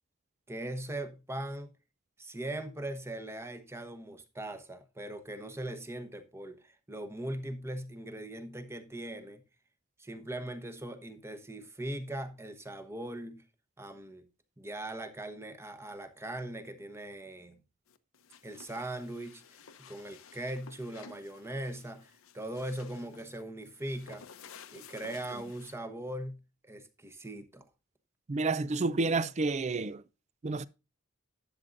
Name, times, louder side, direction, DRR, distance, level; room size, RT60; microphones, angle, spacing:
voice 1, 0.5-1.7 2.2-9.4 10.0-13.4 13.8-14.3 14.6-17.6 18.4-19.4 19.8-24.2 24.7-27.6, right 1 dB, 10° right, 1.0 m, -40 dB
sound 1, 17.9-25.7, left 6 dB, 75° left, 0.8 m, -54 dB
voice 2, 28.3-30.0 30.4-30.6, right 3 dB, 35° right, 0.4 m, -30 dB
12.0 x 7.6 x 2.5 m
head